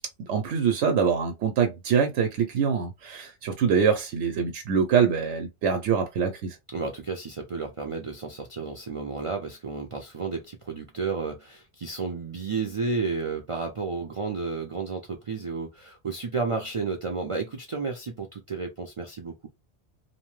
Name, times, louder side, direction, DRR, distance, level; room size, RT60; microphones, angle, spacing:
voice 1, 0.2-6.5, right 6 dB, 85° right, 0.9 m, -24 dB
voice 2, 6.7-19.5, right 4 dB, 55° right, 0.3 m, -32 dB
2.8 x 2.1 x 3.0 m
omnidirectional pair, 1.2 m